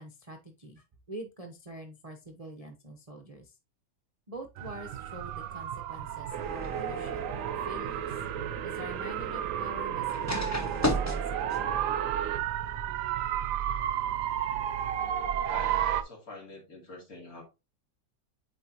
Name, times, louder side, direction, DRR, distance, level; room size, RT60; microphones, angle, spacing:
voice 1, 0.0-3.6 4.3-7.2 7.5-8.2 8.6-11.5, right 1 dB, 30° right, 0.7 m, -45 dB
sound 1, 4.6-16.0, right 10 dB, 85° right, 1.2 m, -33 dB
sound 2, 6.3-13.4, equal, 15° left, 0.8 m, -37 dB
sound 3, 6.3-12.4, right 8 dB, 60° right, 1.0 m, -38 dB
voice 2, 15.5-17.4, left 1 dB, 60° left, 3.1 m, -45 dB
8.6 x 4.5 x 2.9 m
omnidirectional pair, 1.8 m